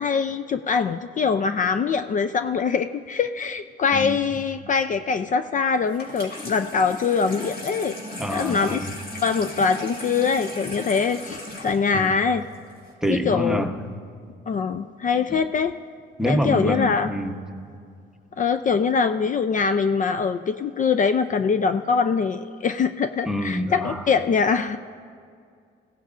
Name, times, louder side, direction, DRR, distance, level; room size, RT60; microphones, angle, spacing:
voice 1, 0.0-7.9 8.3-8.9 9.2-12.4 13.1-13.7 14.5-15.8 16.3-17.1 18.4-24.8, left 5 dB, 40° left, 9 dB, 0.4 m, -23 dB
voice 2, 3.9-4.3 8.2-8.9 11.9-12.1 13.0-13.7 15.3-15.4 16.2-17.4 23.3-24.1, equal, 5° right, 3 dB, 1.0 m, -26 dB
Water tap faucet / Sink (filling or washing), 5.9-12.9, left 1 dB, 55° left, 4.2 m, -37 dB
21.0 x 16.5 x 2.5 m, 2.3 s
cardioid pair, 90°, 20 cm